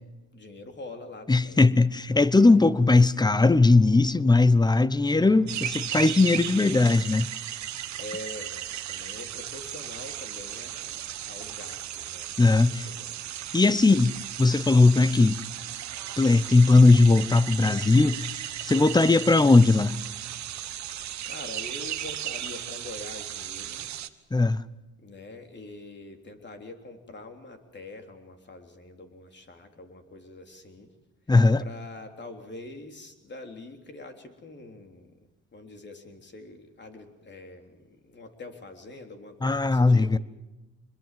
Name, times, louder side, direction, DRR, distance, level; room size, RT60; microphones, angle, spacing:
voice 1, 0.3-1.7 8.0-12.3 12.6-13.2 21.3-23.9 25.0-30.9 31.6-35.1 35.5-40.1, left 2 dB, 35° left, 3.5 m, -44 dB
voice 2, 1.3-7.3 12.4-12.9 13.5-15.4 16.2-18.3 18.6-20.0 24.3-24.6 31.3-31.6 39.4-40.2, left 3 dB, 15° left, 0.8 m, -19 dB
sound 1, 5.5-24.1, right 11 dB, 65° right, 1.2 m, -36 dB
25.0 x 21.5 x 7.6 m
cardioid pair, 90°, 30 cm